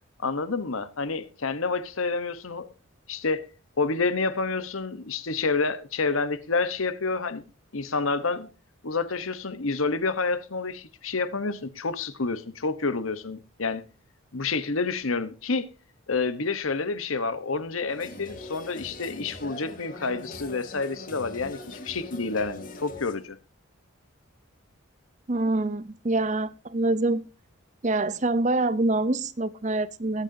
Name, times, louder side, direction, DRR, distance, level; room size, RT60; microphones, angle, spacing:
voice 1, 0.2-2.7 3.1-3.5 3.8-7.4 7.7-8.5 8.8-13.8 14.3-15.7 16.1-23.4, left 4 dB, 80° left, 1.1 m, -28 dB
sound 1, 17.9-23.2, left 2 dB, 40° left, 2.2 m, -42 dB
voice 2, 25.3-27.2 27.8-30.2, right 2 dB, 35° right, 0.6 m, -25 dB
21.5 x 9.0 x 2.7 m
head